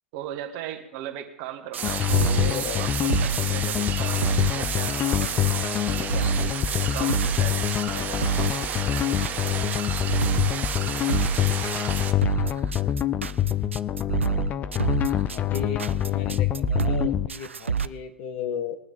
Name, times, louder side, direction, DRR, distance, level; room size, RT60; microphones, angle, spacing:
voice 1, 0.1-7.6 7.9-9.2 9.4-10.1, right 11 dB, 45° right, 6 dB, 1.9 m, -39 dB
sound 1, 1.7-17.9, right 6 dB, 80° right, 0.5 m, -28 dB
sound 2, 1.8-17.3, left 11 dB, 25° left, 0.6 m, -26 dB
sound 3, 1.8-12.1, right 9 dB, 25° right, 1.1 m, -32 dB
voice 2, 2.3-2.9 14.2-14.8 15.3-18.8, left 7 dB, 45° left, 7 dB, 1.6 m, -35 dB
22.5 x 9.5 x 3.7 m, 0.89 s
figure-of-eight pair, 100°, 7 cm